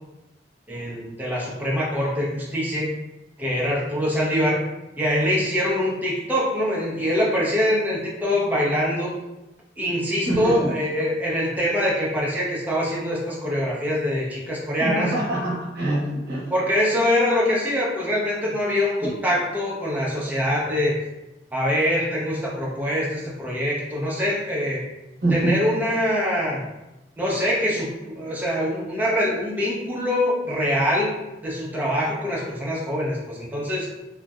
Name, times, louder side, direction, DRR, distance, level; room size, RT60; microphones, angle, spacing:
voice 1, 0.7-2.9 3.4-4.6 5.0-9.1 9.8-15.1 16.5-21.0 21.5-24.8 25.3-26.6 27.2-31.1 31.4-33.9, equal, 10° right, -5 dB, 0.5 m, -24 dB
voice 2, 10.3-10.7 14.8-16.4 19.0-19.1 25.2-25.6, right 1 dB, 60° right, -6 dB, 0.7 m, -24 dB
2.6 x 2.1 x 2.3 m, 1.0 s
head